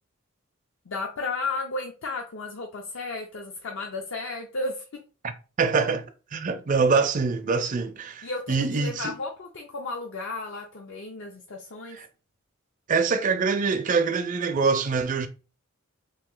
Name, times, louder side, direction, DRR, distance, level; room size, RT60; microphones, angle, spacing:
voice 1, 0.9-4.8 8.2-12.0, left 3 dB, 65° left, 0.5 m, -33 dB
voice 2, 5.6-6.1 6.3-9.1 11.9-12.1 12.9-15.3, right 4 dB, 40° right, 0.4 m, -24 dB
2.9 x 2.6 x 3.7 m
head